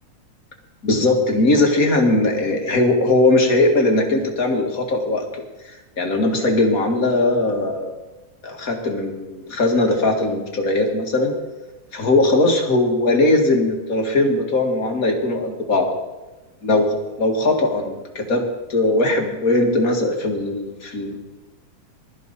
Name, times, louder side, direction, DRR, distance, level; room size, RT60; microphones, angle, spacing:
voice 1, 0.8-5.3 6.0-8.0 8.4-11.3 11.9-15.9 16.6-18.4 18.7-21.2, left 2 dB, 35° left, 2 dB, 1.9 m, -19 dB
21.5 x 13.5 x 4.1 m, 1.1 s
omnidirectional pair, 3.4 m